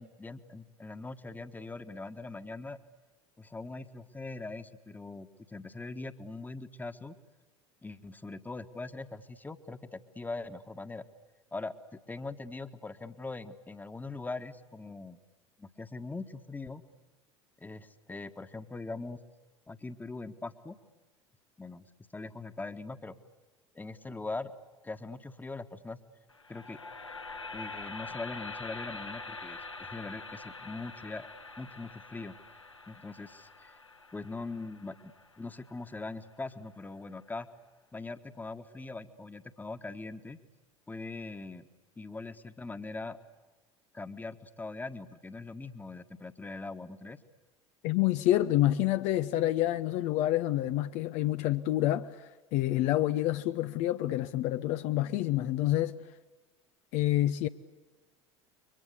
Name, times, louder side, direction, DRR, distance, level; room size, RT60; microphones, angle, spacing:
voice 1, 0.0-2.8 3.4-7.2 7.8-11.0 11.5-15.2 15.6-16.8 17.6-19.2 19.7-20.8 21.6-21.9 22.1-23.2 23.7-24.5 24.8-26.0 26.5-26.8 27.5-31.3 31.6-32.3 32.9-33.7 34.1-37.5 37.9-40.4 40.9-41.7 42.0-43.2 43.9-47.2, left 3 dB, 10° left, 1.6 m, -41 dB
sound 1, 26.3-36.4, left 3 dB, 85° left, 1.6 m, -45 dB
voice 2, 47.8-56.0 56.9-57.5, left 14 dB, 50° left, 0.8 m, -28 dB
29.5 x 24.0 x 8.4 m
figure-of-eight pair, 70°, 15 cm